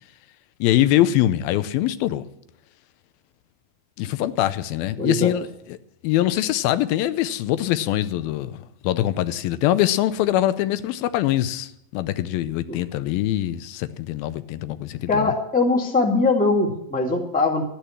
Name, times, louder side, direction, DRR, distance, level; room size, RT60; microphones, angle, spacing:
voice 1, 0.6-2.3 4.0-5.5 6.0-15.3, left 13 dB, 90° left, 2.6 m, -23 dB
voice 2, 5.0-5.3 12.7-12.8 15.1-17.6, left 3 dB, 5° left, 1.1 m, -21 dB
13.0 x 10.5 x 7.3 m
omnidirectional pair, 4.1 m